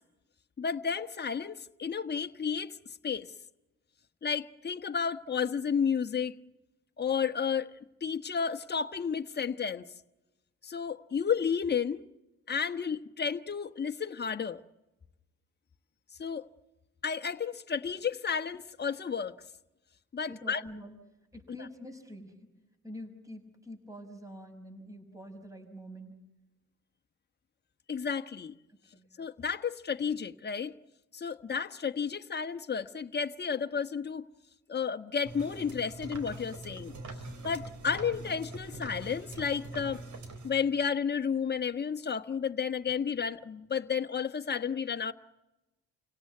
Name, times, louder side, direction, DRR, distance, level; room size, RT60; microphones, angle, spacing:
voice 1, 0.6-2.8 3.0-3.3 4.2-6.3 7.0-9.9 10.6-12.0 12.5-14.6 16.2-16.5 17.0-19.4 20.1-20.6 27.9-28.5 29.2-30.7 31.1-34.2 34.7-36.9 37.4-40.0 40.4-45.1, left 6 dB, 35° left, 1.3 m, -32 dB
voice 2, 20.2-20.9 21.3-22.5 22.8-26.3 28.9-29.1, equal, 10° right, 5.7 m, -46 dB
sound 1, 35.2-40.5, right 2 dB, 70° right, 4.1 m, -43 dB
30.0 x 17.5 x 9.4 m
cardioid pair, 90°, 30 cm